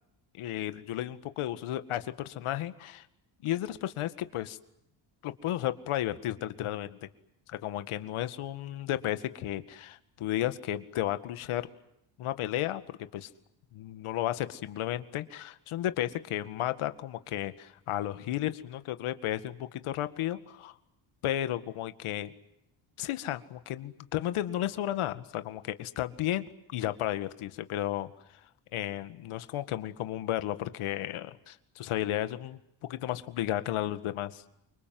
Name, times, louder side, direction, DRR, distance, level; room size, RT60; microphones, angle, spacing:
voice 1, 0.4-3.1 3.4-4.6 5.2-7.0 7.5-11.7 12.2-13.3 13.7-20.7 21.2-22.3 23.0-26.5 26.7-28.1 28.7-32.6 32.9-34.4, left 13 dB, 85° left, 11 dB, 2.0 m, -33 dB
28.5 x 25.5 x 7.8 m, 0.80 s
cardioid pair, 165°, 49 cm